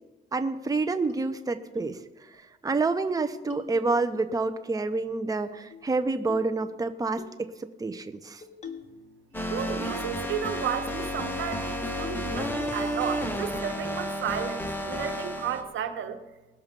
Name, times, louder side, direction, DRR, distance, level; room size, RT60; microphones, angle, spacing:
voice 1, 0.3-2.0 2.6-8.4, right 3 dB, 20° right, 9 dB, 0.8 m, -28 dB
sound 1, 1.1-1.2 1.8-2.0 2.3-2.4 2.8-3.1 3.5-4.2 5.3-5.9 6.3-6.6 7.2-7.4 8.4-9.0 9.3-10.0 10.3-10.4 10.8-11.0 11.4-11.5 12.0-12.3 12.6-13.0, left 6 dB, 35° left, 2.2 m, -45 dB
sound 2, 9.3-15.6, equal, 10° left, 1.7 m, -32 dB
voice 2, 9.5-16.2, right 8 dB, 75° right, 8 dB, 1.2 m, -33 dB
20.0 x 6.9 x 5.3 m, 1.1 s
cardioid pair, 90°, 20 cm